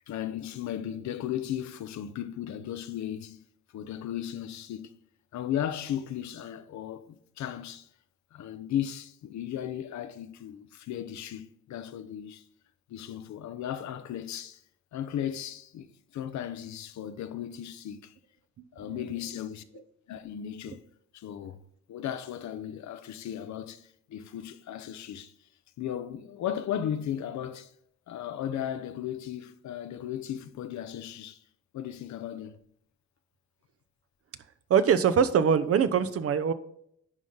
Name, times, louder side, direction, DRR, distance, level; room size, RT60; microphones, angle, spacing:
voice 1, 0.1-3.4 3.7-5.0 5.3-7.9 8.3-12.4 12.9-14.6 14.9-18.1 18.7-20.8 21.1-21.6 21.9-25.3 25.8-27.7 28.1-31.4 31.7-32.6, left 10 dB, 70° left, 0.7 m, -36 dB
voice 2, 34.7-36.5, right 7 dB, 50° right, 0.7 m, -23 dB
11.0 x 3.7 x 3.9 m
cardioid pair, 90°, 30 cm